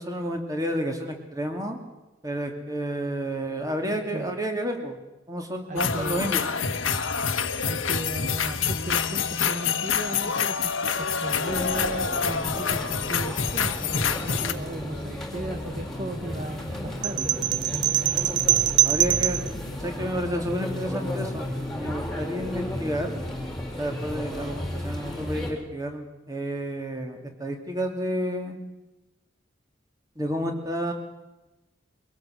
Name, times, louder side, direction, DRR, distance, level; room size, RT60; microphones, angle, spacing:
voice 1, 0.0-1.8 2.2-5.0 5.3-6.4 18.8-23.2 23.8-28.6 30.2-30.9, equal, 20° right, 4 dB, 2.8 m, -30 dB
voice 2, 3.9-4.4 5.7-6.3 7.6-17.3, right 1 dB, 40° right, 7 dB, 1.0 m, -37 dB
sound 1, 5.8-14.5, left 6 dB, 85° left, 1.4 m, -27 dB
sound 2, 11.4-25.5, left 1 dB, ahead, 3.9 m, -33 dB
sound 3, 17.0-19.5, right 12 dB, 65° right, 0.8 m, -23 dB
23.5 x 17.5 x 7.9 m, 1.0 s
head